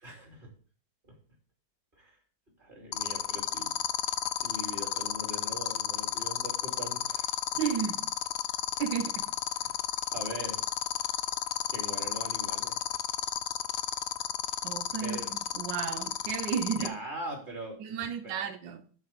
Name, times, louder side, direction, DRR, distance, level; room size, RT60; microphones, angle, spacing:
voice 1, 0.0-0.5 1.0-1.1 2.0-2.2 2.6-3.7 4.3-7.3 9.6-9.8 10.1-10.6 11.7-12.7 15.0-15.3 16.8-18.5, right 1 dB, 30° right, 3.0 m, -42 dB
sound 1, 2.9-16.9, left 12 dB, 80° left, 1.2 m, -31 dB
voice 2, 7.6-8.1 8.8-9.3 14.6-17.0 17.8-18.9, right 8 dB, 90° right, 1.4 m, -33 dB
10.5 x 4.3 x 5.8 m
omnidirectional pair, 1.9 m